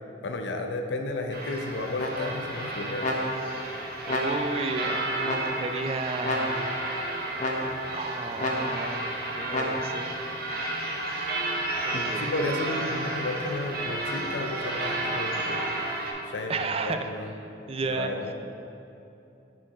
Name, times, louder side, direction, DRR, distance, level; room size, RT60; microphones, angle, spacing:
voice 1, 0.2-3.1 11.9-15.6 16.2-17.3 17.9-18.3, left 2 dB, 80° left, 5 dB, 0.6 m, -33 dB
sound 1, 1.3-16.1, right 2 dB, 55° right, 0.9 m, -32 dB
sound 2, 2.0-2.5 3.0-3.6 4.1-4.7 5.2-5.8 6.2-6.9 7.4-8.0 8.4-9.0 9.5-10.1, left 1 dB, 40° left, 0.7 m, -31 dB
voice 2, 4.1-6.6 7.9-10.2 11.8-12.3 16.5-17.1 17.7-18.1, right 3 dB, 35° right, 7 dB, 0.3 m, -32 dB
6.1 x 4.5 x 4.8 m, 2.8 s
head